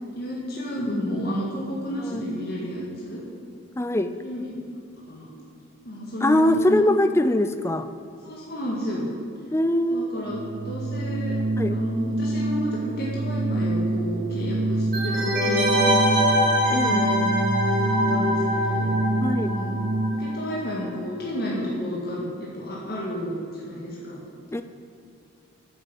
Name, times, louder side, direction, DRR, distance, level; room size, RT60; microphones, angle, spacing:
voice 1, 0.1-3.2 4.2-4.6 5.1-5.3 5.8-6.8 8.2-9.1 9.9-11.4 11.7-16.3 16.8-17.4 17.8-18.9 19.4-19.8 20.1-22.2 22.5-24.2, equal, 50° left, -5 dB, 1.9 m, -31 dB
voice 2, 3.8-4.1 6.2-7.9 9.5-10.2 11.6-11.8 16.7-17.1 19.2-19.5 24.5-24.6, left 1 dB, 15° left, 10 dB, 0.4 m, -22 dB
Organ, 10.2-20.5, right 2 dB, 65° right, 0.5 m, -27 dB
sound 1, 14.9-20.4 20.7-20.8, equal, 40° right, 3.3 m, -24 dB
9.3 x 8.0 x 7.6 m, 2.6 s
head